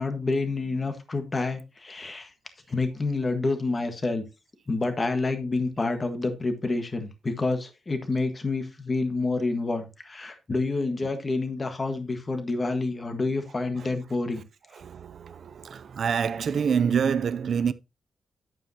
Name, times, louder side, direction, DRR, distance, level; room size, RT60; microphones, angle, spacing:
voice 1, 0.0-2.3 2.7-4.2 4.7-14.4, left 3 dB, 25° left, 1.5 m, -28 dB
voice 2, 14.8-17.7, right 7 dB, 55° right, 0.5 m, -26 dB
9.9 x 8.9 x 2.8 m
wide cardioid pair, 155°, 0 cm